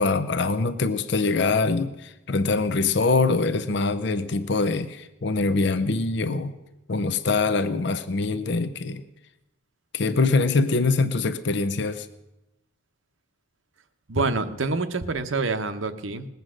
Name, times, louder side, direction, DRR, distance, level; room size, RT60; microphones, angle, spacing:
voice 1, 0.0-6.6 6.9-9.0 9.9-12.1, left 3 dB, 55° left, 11 dB, 0.6 m, -24 dB
voice 2, 14.1-16.3, right 3 dB, 70° right, 9 dB, 0.9 m, -26 dB
20.0 x 8.0 x 6.3 m, 0.94 s
head